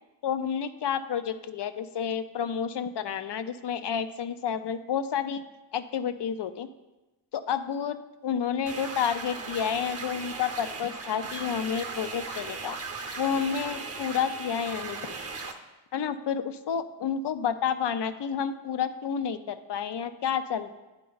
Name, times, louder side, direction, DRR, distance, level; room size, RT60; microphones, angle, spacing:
voice 1, 0.2-5.4 5.7-6.7 7.3-8.0 8.2-12.8 13.2-15.2 15.9-20.8, left 7 dB, 65° left, 11 dB, 0.5 m, -30 dB
sound 1, 8.7-15.5, right 4 dB, 35° right, 0.7 m, -37 dB
9.7 x 4.3 x 3.9 m, 1.1 s
wide cardioid pair, 65°, 44 cm